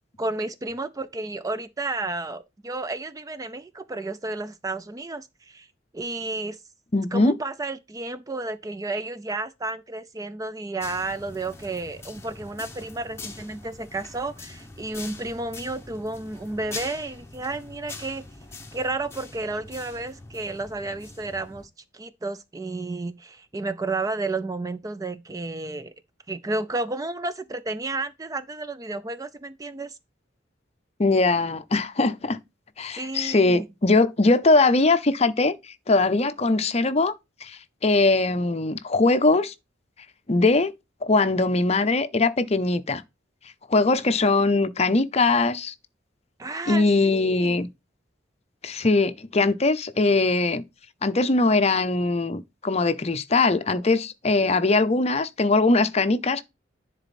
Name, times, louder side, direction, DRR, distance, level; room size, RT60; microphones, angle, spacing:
voice 1, 0.2-5.7 5.9-6.6 7.1-18.3 18.7-25.9 26.3-30.0 32.9-33.7 46.4-47.6, right 2 dB, 20° right, 0.4 m, -32 dB
voice 2, 6.9-7.4 31.0-32.4 32.8-37.1 37.4-39.5 40.3-40.7 41.0-43.0 43.7-45.7 46.7-47.7 48.6-50.6 51.0-56.4, left 3 dB, 35° left, 0.6 m, -21 dB
sound 1, 10.8-21.7, left 3 dB, 15° left, 1.1 m, -43 dB
10.5 x 4.1 x 4.2 m
head